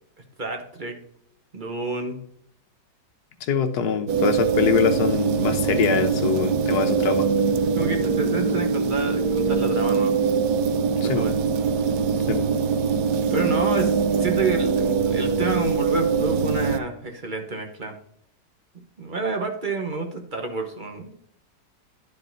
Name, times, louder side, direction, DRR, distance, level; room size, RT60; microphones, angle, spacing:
voice 1, 0.4-1.0 1.5-2.2 7.7-10.1 11.0-11.3 13.3-17.9 19.0-21.1, right 3 dB, 35° right, 4 dB, 0.9 m, -29 dB
voice 2, 3.4-7.3 11.0-11.3 12.3-12.5, left 6 dB, 65° left, 7 dB, 1.3 m, -23 dB
sound 1, 4.1-16.8, right 5 dB, 70° right, 1.1 m, -23 dB
11.0 x 4.6 x 3.9 m, 0.70 s
omnidirectional pair, 1.9 m